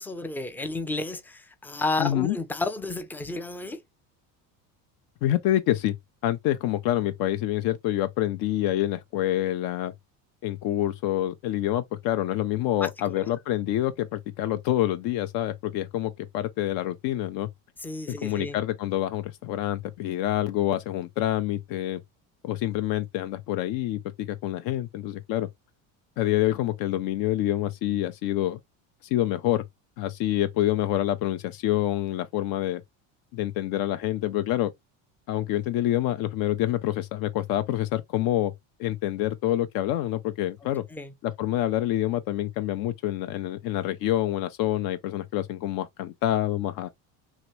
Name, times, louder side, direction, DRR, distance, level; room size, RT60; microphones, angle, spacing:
voice 1, 0.0-3.8 12.8-13.3 17.8-18.6 40.6-41.1, left 2 dB, 5° left, 0.3 m, -32 dB
voice 2, 2.0-2.4 5.2-6.0 6.2-9.9 10.4-17.5 18.1-22.0 22.4-25.5 26.2-28.6 29.0-29.6 30.0-32.8 33.3-34.7 35.3-38.5 38.8-40.9 41.2-46.9, left 13 dB, 65° left, 0.5 m, -27 dB
3.0 x 2.8 x 3.1 m
cardioid pair, 125°, 39 cm